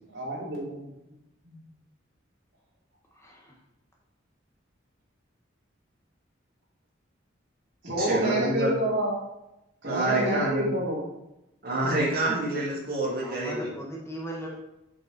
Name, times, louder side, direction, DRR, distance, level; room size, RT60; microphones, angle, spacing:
voice 1, 0.1-0.8 1.4-1.6 7.8-9.2 9.8-11.0, right 1 dB, 75° right, -7 dB, 2.9 m, -28 dB
voice 2, 3.2-3.5 12.5-12.6 13.2-14.5, equal, 15° left, -2 dB, 1.1 m, -38 dB
voice 3, 8.0-8.7 9.8-10.7 11.6-13.7, right 1 dB, 50° right, -5 dB, 2.3 m, -27 dB
7.5 x 5.2 x 3.9 m, 0.91 s
head